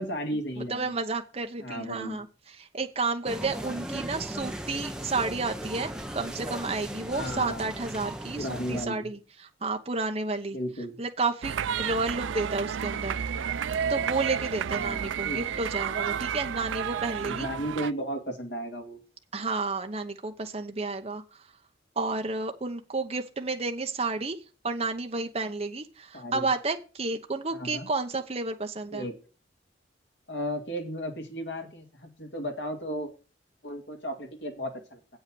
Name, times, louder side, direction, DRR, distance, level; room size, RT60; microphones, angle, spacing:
voice 1, 0.0-0.9 1.6-2.2 7.1-7.7 8.4-9.1 10.5-11.0 14.8-15.6 17.2-19.0 26.1-26.5 27.5-27.9 28.9-29.1 30.3-33.1 33.6-35.0, equal, 65° left, 3 dB, 2.5 m, -34 dB
voice 2, 0.7-9.2 9.6-10.6 11.0-13.2 13.9-17.5 19.3-21.5 22.0-24.4 24.6-29.0, right 3 dB, 35° right, 5 dB, 0.9 m, -31 dB
sound 1, 3.2-8.9, right 1 dB, 5° right, 0.9 m, -37 dB
sound 2, 11.4-17.9, right 8 dB, 80° right, 0.4 m, -31 dB
8.2 x 5.6 x 7.7 m, 0.34 s
head